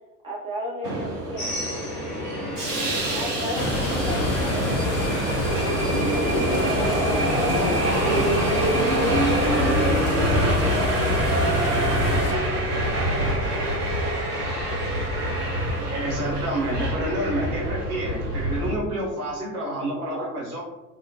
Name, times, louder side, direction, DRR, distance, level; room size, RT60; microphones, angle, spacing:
voice 1, 0.2-1.5 3.1-6.2 6.6-12.1 13.0-13.8, equal, 10° right, -4 dB, 0.6 m, -37 dB
Subway metro underground, 0.8-18.7, right 1 dB, 90° right, 0.6 m, -25 dB
sound 1, 1.4-16.2, left 1 dB, 75° left, 1.0 m, -39 dB
sound 2, 3.5-12.3, left 2 dB, 55° left, 0.7 m, -28 dB
voice 2, 15.9-20.6, right 1 dB, 70° right, -4 dB, 1.0 m, -28 dB
2.8 x 2.2 x 2.6 m, 1.1 s
figure-of-eight pair, 60°, 46 cm